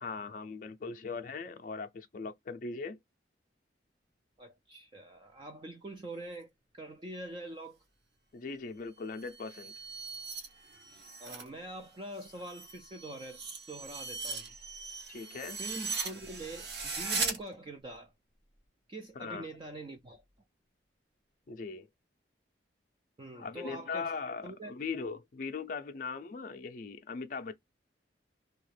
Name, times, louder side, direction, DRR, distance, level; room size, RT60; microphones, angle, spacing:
voice 1, 0.0-3.0 8.3-9.7 15.1-15.6 19.2-19.5 21.5-21.9 23.3-27.5, left 4 dB, 45° left, 0.4 m, -39 dB
voice 2, 4.4-7.8 11.2-14.5 15.6-18.1 18.9-20.2 23.2-24.1 24.4-24.8, right 2 dB, 25° right, 0.3 m, -44 dB
sound 1, 9.1-11.5 11.8-17.4, right 4 dB, 65° right, 0.9 m, -39 dB
2.7 x 2.4 x 3.2 m
head